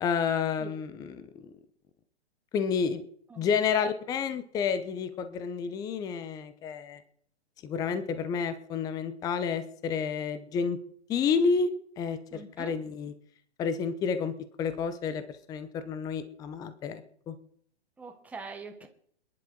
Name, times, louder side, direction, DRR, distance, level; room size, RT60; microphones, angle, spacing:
voice 1, 0.0-1.5 2.5-3.0 3.4-7.0 7.6-10.8 11.1-11.7 12.0-13.1 13.6-17.4, left 6 dB, 10° left, 11 dB, 0.7 m, -30 dB
voice 2, 12.3-12.8 18.0-18.9, right 4 dB, 5° right, 3 dB, 1.3 m, -43 dB
27.0 x 11.0 x 3.9 m, 0.63 s
hypercardioid pair, 155°, 33 cm